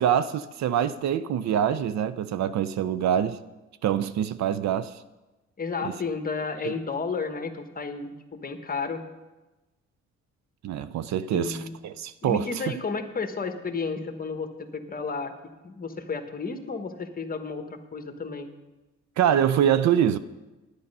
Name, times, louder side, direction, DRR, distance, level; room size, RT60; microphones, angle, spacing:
voice 1, 0.0-3.4 3.8-4.9 5.8-5.9 6.6-6.7 10.6-12.5 19.2-20.2, right 9 dB, 65° right, 0.5 m, -25 dB
voice 2, 5.6-9.0 11.3-11.7 12.2-15.3 15.6-18.5, left 4 dB, 30° left, 1.2 m, -32 dB
10.5 x 9.7 x 5.4 m
cardioid pair, 90°, 30 cm